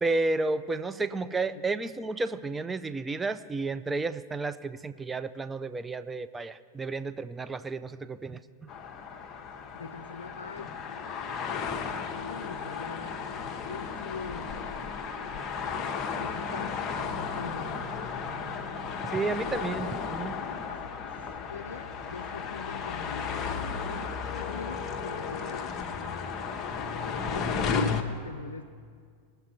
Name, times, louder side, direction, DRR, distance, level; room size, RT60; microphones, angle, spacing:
voice 1, 0.0-8.4 19.0-20.4, right 3 dB, 10° right, 13 dB, 0.4 m, -31 dB
voice 2, 1.5-1.9 9.7-10.8 11.5-11.7 12.1-14.6 16.1-16.9 17.1-17.8 19.0-19.7 20.7-20.8 21.1-23.6 23.9-26.3 26.8-28.6, left 5 dB, 70° left, 5 dB, 0.4 m, -43 dB
sound 1, 8.7-28.0, left 5 dB, 30° left, 0.7 m, -34 dB
20.0 x 6.7 x 4.2 m, 2.1 s
figure-of-eight pair, 90°, 0 cm